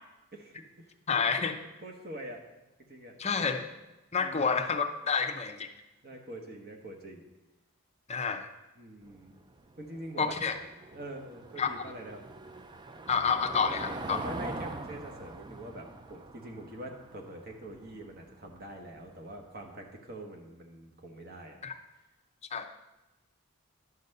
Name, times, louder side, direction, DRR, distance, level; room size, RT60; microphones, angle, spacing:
voice 1, 0.3-0.9 1.8-2.4 2.8-3.2 4.1-4.5 6.0-7.3 8.8-9.3 9.8-10.5 10.9-12.2 14.1-21.6, right 1 dB, 45° right, 2 dB, 1.1 m, -44 dB
voice 2, 1.1-1.6 3.2-3.7 4.1-5.7 8.1-8.5 10.2-10.5 11.6-11.7 13.1-14.2 21.6-21.7 22.5-22.6, left 5 dB, 30° left, 5 dB, 0.5 m, -29 dB
Car passing by / Engine, 9.0-19.7, right 2 dB, 20° right, 0.4 m, -43 dB
11.0 x 4.0 x 6.5 m, 1.0 s
head